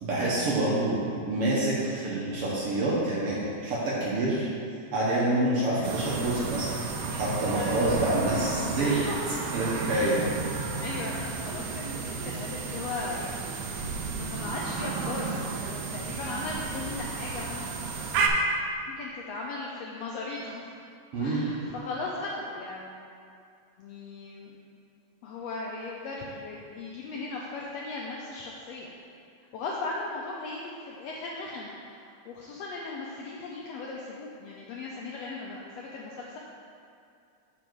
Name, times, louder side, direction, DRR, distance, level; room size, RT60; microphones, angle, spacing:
voice 1, 0.0-4.5 4.9-6.8 7.1-8.9 9.5-10.1 21.1-21.4, right 1 dB, 65° right, -6 dB, 1.6 m, -27 dB
sound 1, 5.8-18.3, right 4 dB, 85° right, 1.4 m, -33 dB
voice 2, 7.5-9.2 9.9-10.1 10.8-17.7 18.9-20.7 21.2-23.0 23.8-24.5 25.2-28.9 29.5-36.4, left 3 dB, 85° left, -3 dB, 1.5 m, -37 dB
7.0 x 5.0 x 4.5 m, 2.4 s
omnidirectional pair, 3.5 m